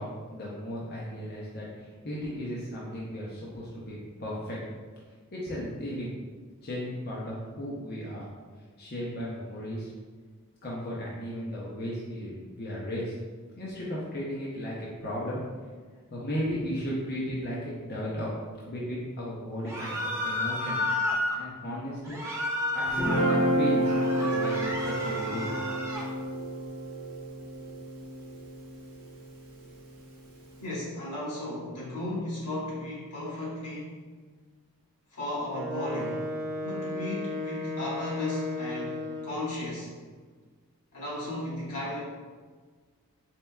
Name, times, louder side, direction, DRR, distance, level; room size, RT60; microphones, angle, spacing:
voice 1, 0.0-4.6 5.3-6.2 6.6-8.2 8.8-9.9 10.6-13.1 13.5-15.4 16.1-20.8 21.4-22.2 22.7-25.5, equal, 45° left, -6 dB, 0.6 m, -35 dB
sound 1, 19.7-21.4 22.1-23.4 23.8-26.1, left 1 dB, 10° right, 0.4 m, -31 dB
Guitar, 22.9-29.2, right 1 dB, 45° right, 1.2 m, -29 dB
voice 2, 30.6-34.1 35.1-36.3 36.6-39.9 40.9-42.0, left 1 dB, 85° left, -6 dB, 1.4 m, -35 dB
Wind instrument woodwind instrument, 35.5-39.5, left 1 dB, 65° right, 0.5 m, -34 dB
4.4 x 3.3 x 2.2 m, 1.5 s
head